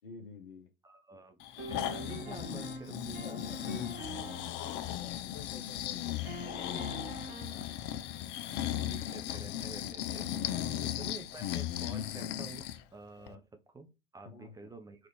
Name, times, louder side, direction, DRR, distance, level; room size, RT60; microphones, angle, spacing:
voice 1, 0.0-0.7 3.2-3.7 4.1-7.7 13.2-13.4 14.2-14.7, left 5 dB, 80° left, 0.7 m, -51 dB
voice 2, 0.8-3.8 4.6-4.7 7.5-7.6 8.7-10.3 10.8-12.7 12.9-15.1, right 3 dB, 10° right, 0.6 m, -49 dB
Breathing, 1.4-12.8 13.3-13.4, left 12 dB, 40° left, 0.4 m, -37 dB
sound 1, 1.6-4.6 6.2-7.7, right 5 dB, 55° right, 1.5 m, -45 dB
4.4 x 2.4 x 3.0 m
figure-of-eight pair, 80°, 30 cm